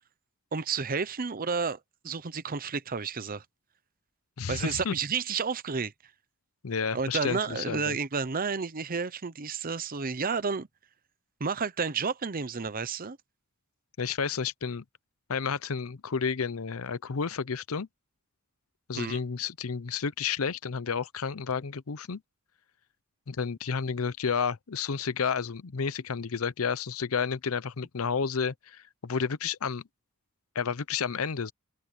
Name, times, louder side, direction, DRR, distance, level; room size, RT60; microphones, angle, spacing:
voice 1, 0.5-1.8 2.0-3.4 4.5-5.9 6.9-10.7 11.4-13.2 18.9-19.2, right 5 dB, 40° right, 0.8 m, -31 dB
voice 2, 4.4-4.9 6.6-8.0 14.0-14.8 15.3-17.9 18.9-22.2 23.3-29.8 30.5-31.5, left 6 dB, 70° left, 0.7 m, -31 dB
head